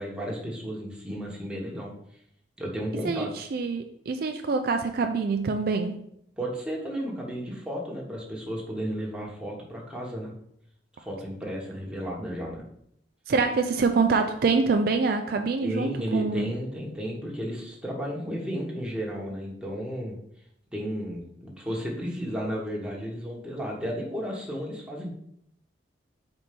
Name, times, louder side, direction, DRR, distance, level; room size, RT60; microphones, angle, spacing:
voice 1, 0.0-1.9 2.6-3.3 6.4-10.3 11.0-12.6 15.6-20.2 20.7-25.1, equal, 5° right, -3 dB, 1.2 m, -33 dB
voice 2, 3.0-6.0 13.3-16.5, right 4 dB, 55° right, 6 dB, 0.4 m, -25 dB
4.4 x 4.3 x 5.1 m, 0.74 s
head